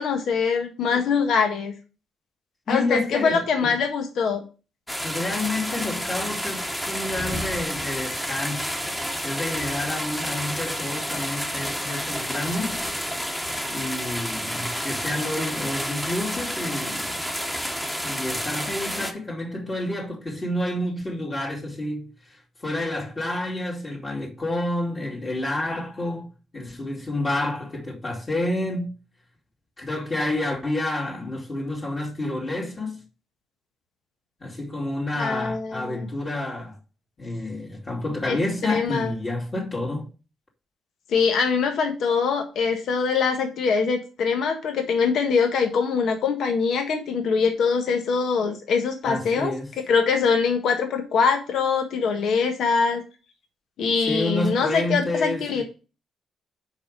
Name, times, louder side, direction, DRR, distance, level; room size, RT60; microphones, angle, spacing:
voice 1, 0.0-1.7 2.7-4.4 35.2-36.1 38.3-38.4 38.6-39.1 41.1-49.5 49.9-53.0 53.8-55.6, left 5 dB, 70° left, 1.6 m, -23 dB
voice 2, 2.7-3.8 5.0-12.8 13.7-17.1 18.0-26.3 26.5-28.9 29.8-33.0 34.4-36.8 37.2-40.1 49.0-49.7 54.1-55.6, left 1 dB, 30° left, 2.6 m, -29 dB
sound 1, 4.9-19.1, equal, 5° left, 1.3 m, -30 dB
5.5 x 5.1 x 6.6 m
cardioid pair, 90°, 0 cm